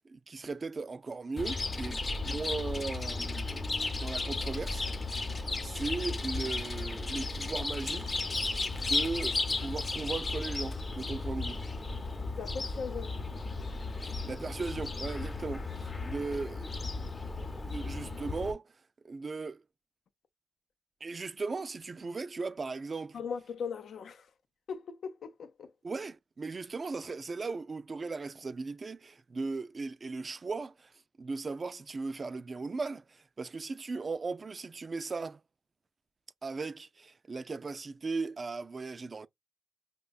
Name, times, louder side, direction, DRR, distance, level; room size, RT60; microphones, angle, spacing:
voice 1, 0.1-3.7 3.9-4.9 5.6-11.6 14.0-17.1 17.7-18.7 19.0-19.6 21.0-23.2 25.8-30.9 31.2-35.4 36.4-39.3, right 4 dB, 50° right, 0.3 m, -37 dB
Chirp tweet, 1.4-18.5, left 3 dB, 40° left, 0.7 m, -34 dB
voice 2, 12.4-13.1 23.1-24.2 24.7-25.7, left 6 dB, 85° left, 0.5 m, -39 dB
5.2 x 2.2 x 2.3 m
cardioid pair, 55°, 0 cm